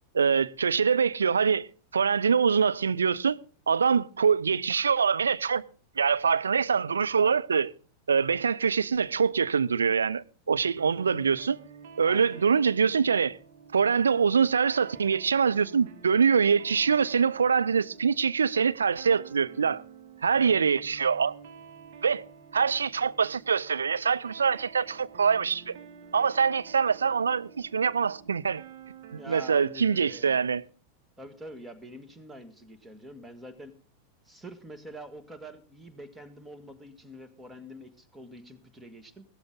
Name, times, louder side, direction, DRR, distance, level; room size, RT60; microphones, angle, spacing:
voice 1, 0.1-3.4 3.7-5.7 6.0-7.7 8.1-11.6 12.0-13.4 13.7-19.8 20.2-21.4 22.0-22.2 22.5-25.8 26.1-28.6 29.3-30.6, right 6 dB, 70° right, 0.6 m, -24 dB
sound 1, 10.8-29.9, right 6 dB, 50° right, 1.6 m, -49 dB
voice 2, 12.1-12.6 20.3-20.6 29.1-30.4 31.2-33.7 34.2-39.2, equal, 10° right, 1.8 m, -46 dB
16.0 x 13.0 x 4.0 m
figure-of-eight pair, 90°, 0 cm